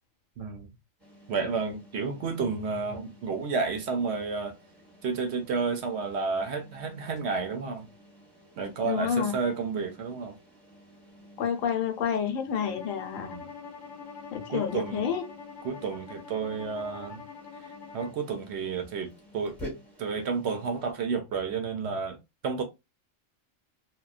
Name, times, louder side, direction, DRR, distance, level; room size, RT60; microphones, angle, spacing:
voice 1, 0.4-0.7 1.3-4.5 5.0-7.9 8.6-10.4 13.2-13.5 14.5-15.1 15.6-17.2 17.9-19.6 20.0-22.2 22.4-22.6, right 5 dB, 65° right, 0.8 m, -31 dB
sound 1, 1.0-20.9, equal, ahead, 1.0 m, -51 dB
voice 2, 8.8-9.3 11.4-13.3 14.3-15.2, left 8 dB, 85° left, 1.0 m, -29 dB
Bowed string instrument, 12.6-18.2, left 6 dB, 65° left, 0.8 m, -44 dB
2.9 x 2.2 x 2.3 m
omnidirectional pair, 1.4 m